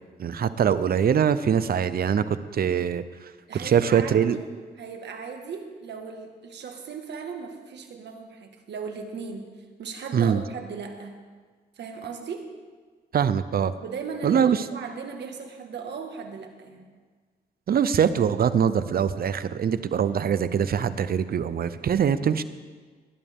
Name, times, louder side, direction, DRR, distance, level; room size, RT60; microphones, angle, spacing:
voice 1, 0.2-3.0 3.5-4.4 10.1-10.4 13.1-13.7 14.2-14.6 17.7-22.4, right 8 dB, 60° right, 14 dB, 0.7 m, -23 dB
voice 2, 3.5-4.4 4.8-9.5 9.8-11.2 11.8-12.5 13.8-16.9, right 5 dB, 75° right, 4 dB, 1.8 m, -37 dB
19.5 x 11.0 x 3.7 m, 1.5 s
cardioid pair, 80°, 18 cm